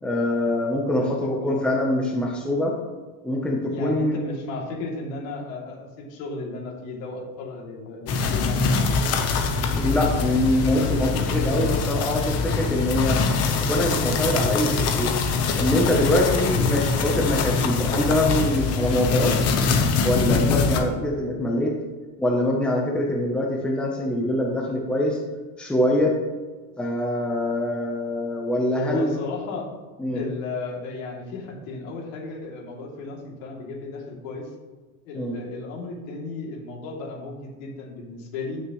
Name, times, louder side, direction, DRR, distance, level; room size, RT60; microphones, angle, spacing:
voice 1, 0.0-2.7 3.2-4.2 9.7-13.2 13.6-15.1 15.6-19.3 20.0-21.7 22.2-25.2 25.6-26.1 26.8-29.1 30.0-30.2 35.1-35.3, left 1 dB, ahead, -1 dB, 0.8 m, -24 dB
voice 2, 0.9-1.6 3.7-9.2 11.3-11.7 28.7-29.7 30.1-34.5 35.0-38.6, left 3 dB, 70° left, -2 dB, 3.1 m, -34 dB
sound 1, 8.1-20.8, left 4 dB, 35° left, 1.0 m, -23 dB
16.5 x 6.6 x 3.2 m, 1.4 s
cardioid pair, 170°, 43 cm